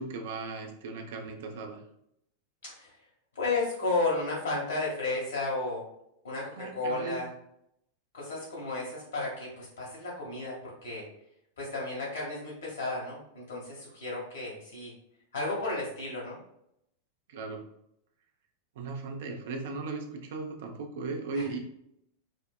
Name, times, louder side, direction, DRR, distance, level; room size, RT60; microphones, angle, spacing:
voice 1, 0.0-1.8 6.6-7.2 17.3-17.6 18.8-21.6, right 3 dB, 55° right, 3 dB, 0.6 m, -37 dB
voice 2, 3.3-5.9 6.2-7.3 8.1-11.1 11.6-14.9 15.3-16.4 21.3-21.4, left 2 dB, 65° left, -4 dB, 1.5 m, -33 dB
4.9 x 2.1 x 2.2 m, 0.76 s
figure-of-eight pair, 90°, 0 cm